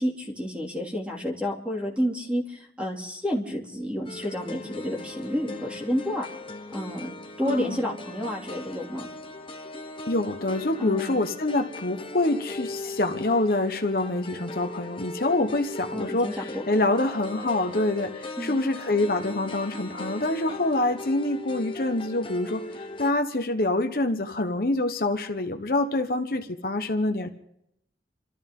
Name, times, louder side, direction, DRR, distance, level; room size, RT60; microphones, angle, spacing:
voice 1, 0.0-6.3 6.7-7.1 7.4-9.1 10.8-11.2 15.9-16.4 18.4-18.6, equal, 5° right, -1 dB, 2.7 m, -30 dB
sound 1, 4.1-23.1, left 2 dB, 30° left, 1.2 m, -39 dB
voice 2, 7.4-7.8 10.1-27.3, left 2 dB, 55° left, 5 dB, 1.1 m, -26 dB
28.5 x 13.5 x 3.8 m, 0.79 s
head